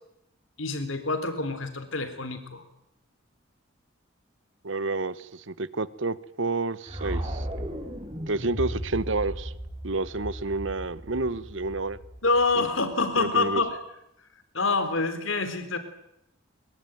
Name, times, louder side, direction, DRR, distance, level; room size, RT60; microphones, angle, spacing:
voice 1, 0.6-2.6 12.2-13.8 14.5-15.8, left 3 dB, 70° left, 10 dB, 3.9 m, -26 dB
voice 2, 4.6-7.5 8.3-9.5 9.8-12.0 12.6-12.7 13.2-13.6, right 3 dB, 65° right, 17 dB, 1.1 m, -29 dB
sound 1, 6.9-12.9, equal, 25° right, 5.7 m, -36 dB
23.0 x 22.5 x 9.3 m, 0.81 s
head